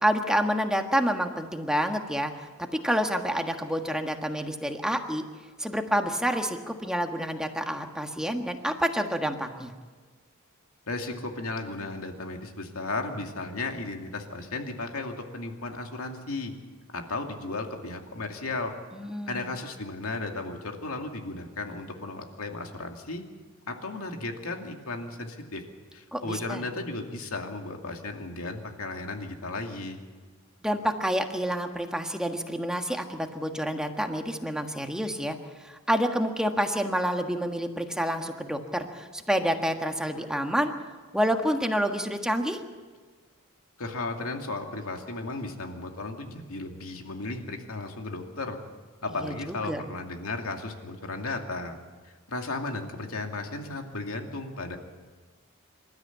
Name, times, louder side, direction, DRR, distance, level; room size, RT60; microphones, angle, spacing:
voice 1, 0.0-5.2 5.6-9.7 18.9-19.5 26.1-26.6 30.6-40.7 41.1-42.6 49.2-49.8, equal, 5° right, 4 dB, 1.6 m, -28 dB
voice 2, 10.9-16.5 16.9-18.7 19.3-23.2 23.7-25.6 25.9-30.0 43.8-48.6 49.0-51.8 52.0-54.8, left 2 dB, 80° left, 3 dB, 2.5 m, -35 dB
26.5 x 13.0 x 8.4 m, 1.4 s
head